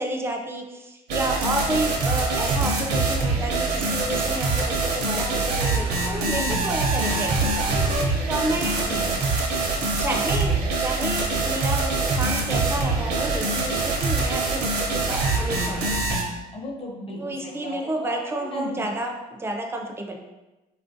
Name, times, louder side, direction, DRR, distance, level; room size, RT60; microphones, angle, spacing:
voice 1, 0.0-8.8 9.7-16.0 17.2-20.2, right 1 dB, 15° right, 2 dB, 0.4 m, -30 dB
sound 1, 1.1-16.2, right 3 dB, 80° right, 0.6 m, -24 dB
voice 2, 6.4-6.8 8.5-9.1 16.5-18.8, left 1 dB, 35° left, -1 dB, 0.7 m, -36 dB
3.2 x 2.4 x 2.5 m, 1.0 s
cardioid pair, 110°, 17 cm